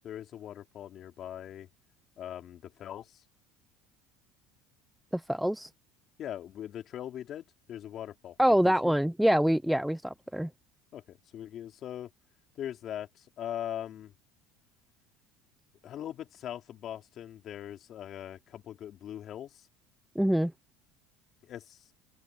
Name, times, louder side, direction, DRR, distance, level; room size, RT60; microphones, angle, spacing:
voice 1, 0.0-1.7 2.2-3.2 6.2-8.3 8.6-9.0 10.9-12.1 12.5-14.1 15.8-19.7 21.4-21.8, left 10 dB, 45° left, 3.5 m, -41 dB
voice 2, 5.1-5.7 8.4-10.5 20.2-20.5, equal, ahead, 0.7 m, -25 dB
open air
supercardioid pair, 120°, 0 cm